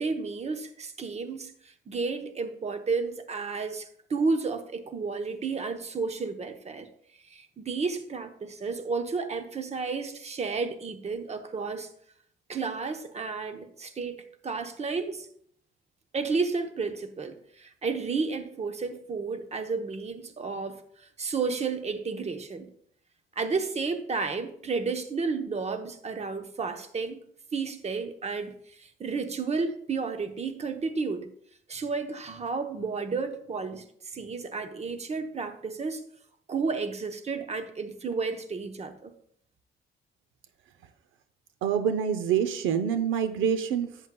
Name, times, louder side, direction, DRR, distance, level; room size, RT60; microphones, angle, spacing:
voice 1, 0.0-6.9 7.3-11.9 12.5-15.3 16.1-22.7 23.4-27.2 27.5-31.3 31.7-36.0 36.5-39.1, right 4 dB, 35° right, 8 dB, 0.9 m, -32 dB
voice 2, 41.6-44.1, right 8 dB, 85° right, 10 dB, 0.7 m, -26 dB
10.5 x 8.2 x 2.3 m, 0.65 s
cardioid pair, 90°, 20 cm